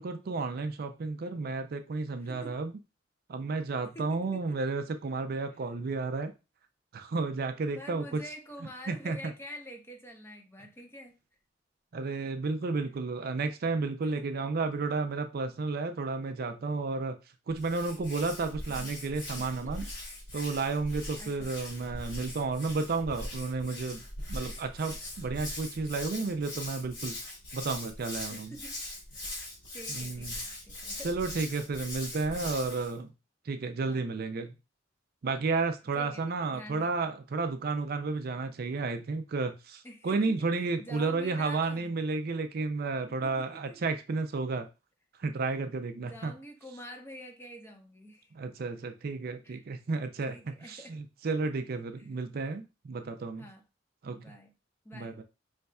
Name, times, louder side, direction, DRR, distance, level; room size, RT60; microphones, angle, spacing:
voice 1, 0.0-2.7 3.3-6.3 6.9-8.2 8.9-9.2 11.9-17.2 17.5-19.8 20.3-24.0 24.3-27.2 27.5-28.5 29.9-30.4 31.0-33.1 33.5-34.5 35.2-44.7 45.2-46.3 48.4-50.4 50.7-53.5 54.0-54.2 54.9-55.2, right 3 dB, 55° right, 0.4 m, -32 dB
voice 2, 2.2-2.6 3.9-4.6 5.5-5.6 7.7-11.2 14.0-14.2 19.4-19.9 21.2-21.6 28.3-28.8 29.7-31.1 33.8-34.1 36.0-37.1 39.8-40.5 40.8-42.0 43.1-43.8 46.0-48.3 49.4-49.6 50.3-51.0 52.0-52.1 53.4-53.7 54.1-54.5 54.8-55.2, equal, 15° left, 0.6 m, -47 dB
Hands, 17.5-32.9, left 1 dB, 70° left, 2.4 m, -41 dB
5.4 x 3.2 x 2.3 m
head